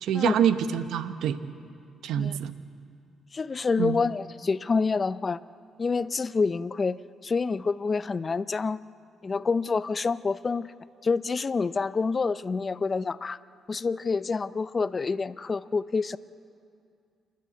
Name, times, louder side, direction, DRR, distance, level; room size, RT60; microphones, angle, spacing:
voice 1, 0.0-1.4 2.0-2.5 3.8-4.0, right 9 dB, 80° right, 11 dB, 0.8 m, -26 dB
voice 2, 3.3-5.4 5.8-7.0 7.2-8.8 9.2-10.7 11.0-13.4 13.7-16.2, left 4 dB, 35° left, 16 dB, 0.5 m, -27 dB
29.0 x 11.5 x 8.6 m, 2.4 s
cardioid pair, 90°, 0 cm